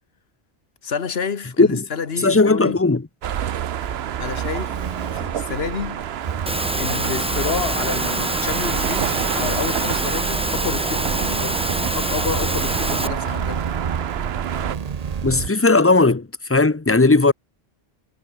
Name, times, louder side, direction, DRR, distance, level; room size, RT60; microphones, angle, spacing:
voice 1, 0.8-2.8 4.2-6.1 6.8-13.7, left 6 dB, 75° left, 1.6 m, -29 dB
voice 2, 2.2-3.0 15.2-17.3, left 3 dB, 15° left, 0.6 m, -16 dB
sound 1, 3.2-14.8, right 10 dB, 75° right, 1.0 m, -28 dB
sound 2, 3.8-15.5, right 7 dB, 45° right, 0.7 m, -30 dB
Engine / Mechanisms, 6.5-13.1, equal, 5° right, 1.6 m, -26 dB
omnidirectional pair, 1.1 m